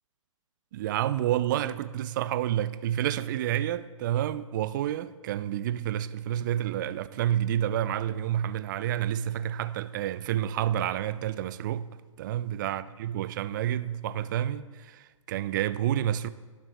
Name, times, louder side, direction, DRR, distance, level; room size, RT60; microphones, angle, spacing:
voice 1, 0.7-11.9 12.2-16.3, right 11 dB, 35° right, 0.5 m, -29 dB
22.0 x 7.3 x 3.5 m
figure-of-eight pair, 125°, 17 cm